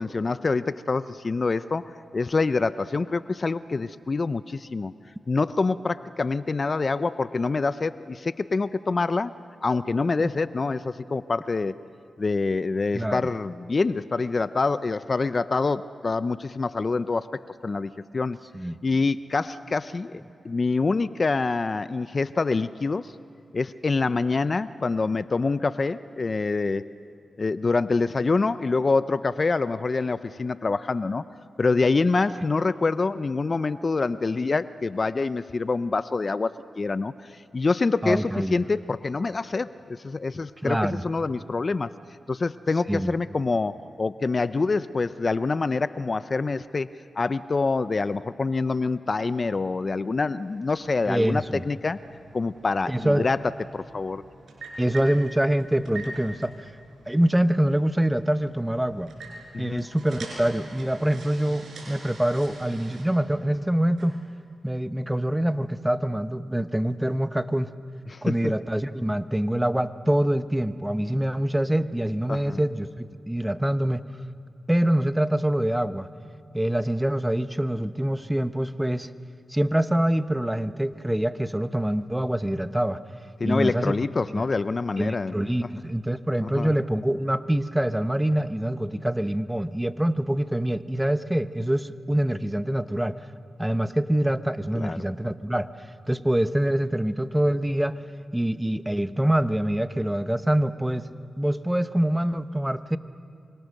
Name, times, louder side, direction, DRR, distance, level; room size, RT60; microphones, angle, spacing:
voice 1, 0.0-4.9 5.3-9.3 9.6-11.8 12.2-18.4 18.8-23.1 23.5-26.9 27.4-31.2 31.6-41.9 42.3-46.9 47.2-52.0 52.3-53.4 53.7-54.2 59.5-59.8 68.1-68.5 72.3-72.6 83.4-85.4 86.4-86.7 94.7-95.0, left 3 dB, 45° left, 14 dB, 0.6 m, -26 dB
voice 2, 12.9-13.3 18.5-18.8 38.0-38.5 40.6-41.0 42.9-43.1 51.1-51.6 52.9-53.3 54.8-56.7 57.1-59.1 59.6-64.2 64.6-67.7 68.2-74.0 74.7-76.1 76.5-79.1 79.5-83.0 83.4-84.0 84.3-84.4 85.0-93.2 93.6-98.0 98.3-101.1 101.4-103.0, right 1 dB, 10° right, 11 dB, 1.0 m, -25 dB
sound 1, 50.4-64.1, right 2 dB, 75° right, 7.1 m, -45 dB
27.0 x 25.0 x 6.6 m, 2.7 s
cardioid pair, 50°, 0 cm